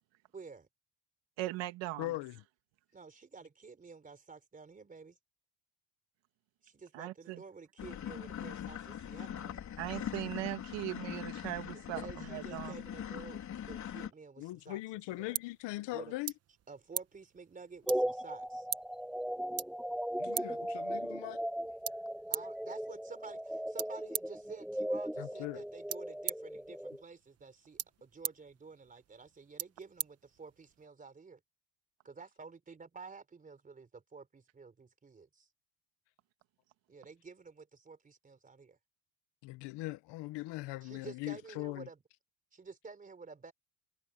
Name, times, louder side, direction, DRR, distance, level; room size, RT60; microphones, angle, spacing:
voice 1, 0.3-0.7 2.9-5.2 6.6-9.6 11.7-14.8 15.1-15.4 15.9-16.1 16.7-18.6 22.3-31.4 32.0-35.5 36.9-38.8 40.8-42.0 42.5-43.5, right 4 dB, 15° right, 4.1 m, -51 dB
voice 2, 1.4-2.1 6.9-7.4 9.8-12.7, right 17 dB, 70° right, 2.0 m, -39 dB
voice 3, 2.0-2.4 12.0-12.1 14.4-16.3 20.2-21.4 25.2-25.6 39.4-41.9, left 19 dB, 65° left, 0.8 m, -40 dB
sound 1, 7.8-14.1, left 9 dB, 40° left, 4.0 m, -42 dB
sound 2, 14.6-30.9, right 10 dB, 30° right, 1.0 m, -44 dB
sound 3, 17.9-27.0, equal, ahead, 0.4 m, -37 dB
cardioid pair, 170°, 46 cm